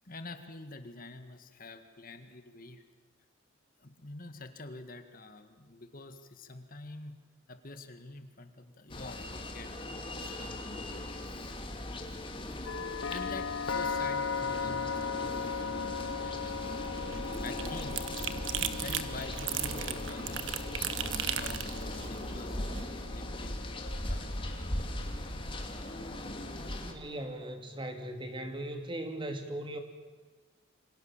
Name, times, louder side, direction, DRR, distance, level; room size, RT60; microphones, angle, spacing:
voice 1, 0.1-2.8 3.8-7.2 7.5-11.0 12.7-16.6 17.4-18.0 18.8-20.4 21.1-24.9, left 2 dB, 45° left, 8 dB, 1.9 m, -47 dB
sound 1, 8.9-26.9, left 1 dB, 25° left, 2.7 m, -39 dB
sound 2, 12.6-26.5, left 5 dB, 80° left, 1.3 m, -39 dB
sound 3, 16.7-22.8, right 7 dB, 70° right, 1.5 m, -37 dB
voice 2, 26.8-29.8, right 1 dB, 25° right, 6 dB, 2.6 m, -38 dB
28.0 x 25.5 x 7.4 m, 1.4 s
head